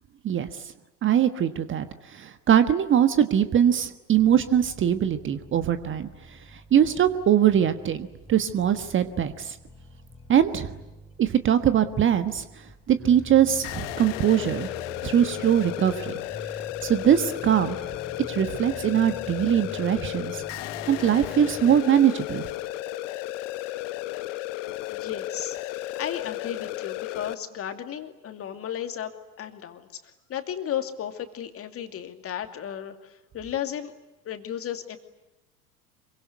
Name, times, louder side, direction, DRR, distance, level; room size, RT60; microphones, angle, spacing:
voice 1, 1.0-6.1 6.5-9.6 10.3-10.7 11.2-12.4 12.9-14.7 15.0-16.1 16.8-17.8 18.3-20.4 20.9-22.4, right 9 dB, 25° right, 11 dB, 1.4 m, -22 dB
sound 1, 4.2-21.8, left 1 dB, ahead, 4.0 m, -45 dB
sound 2, 13.6-27.3, left 15 dB, 50° left, 1.2 m, -34 dB
voice 2, 24.9-29.1 29.4-29.9 30.3-33.9 34.2-35.0, left 10 dB, 30° left, 7 dB, 2.6 m, -34 dB
26.5 x 24.0 x 9.5 m, 1.0 s
figure-of-eight pair, 80°, 45 cm